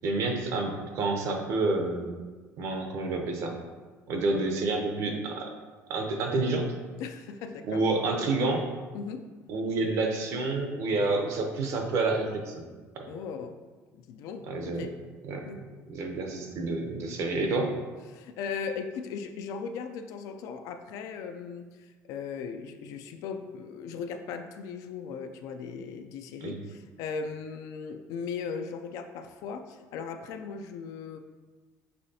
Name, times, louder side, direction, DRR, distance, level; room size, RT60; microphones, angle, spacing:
voice 1, 0.0-2.1 2.6-3.5 4.1-5.5 5.9-6.7 7.7-8.6 9.5-12.5 13.0-13.1 14.5-14.9 15.3-15.4 15.9-17.7 26.4-26.6, right 3 dB, 55° right, 3 dB, 0.6 m, -29 dB
voice 2, 7.0-8.2 8.9-9.3 13.1-13.6 13.9-14.9 15.5-15.6 18.1-31.2, left 6 dB, 65° left, 7 dB, 0.4 m, -38 dB
5.5 x 3.1 x 2.7 m, 1.4 s
cardioid pair, 155°, 6 cm